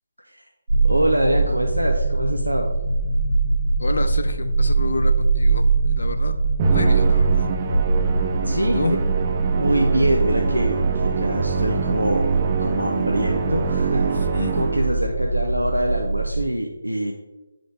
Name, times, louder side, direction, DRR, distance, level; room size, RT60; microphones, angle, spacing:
sound 1, 0.7-16.5, right 3 dB, 65° right, 1.2 m, -22 dB
voice 1, 0.8-2.7 8.4-9.0 9.5-12.3 12.6-17.1, right 1 dB, 90° right, 1 dB, 0.6 m, -24 dB
voice 2, 3.8-6.3 6.7-7.5 8.7-8.9 14.1-14.6, left 3 dB, 60° left, 8 dB, 0.5 m, -28 dB
Musical instrument, 6.6-15.1, right 6 dB, 25° right, 0.4 m, -26 dB
8.2 x 3.9 x 3.3 m, 1.1 s
figure-of-eight pair, 150°, 0 cm